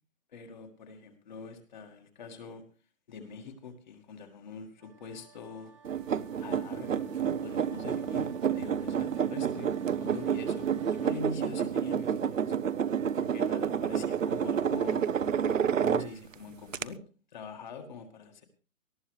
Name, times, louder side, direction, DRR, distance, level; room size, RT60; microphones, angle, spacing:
voice 1, 0.3-2.6 3.1-5.7 6.4-9.7 10.0-12.5 12.9-15.1 15.8-17.0 17.3-18.5, left 4 dB, 35° left, 4 dB, 1.9 m, -44 dB
sound 1, 4.8-11.2, right 5 dB, 25° right, 0.9 m, -57 dB
sound 2, 5.8-16.3 16.7-16.8, right 8 dB, 70° right, 0.9 m, -29 dB
18.5 x 14.0 x 3.3 m, 0.36 s
hypercardioid pair, 160°, 41 cm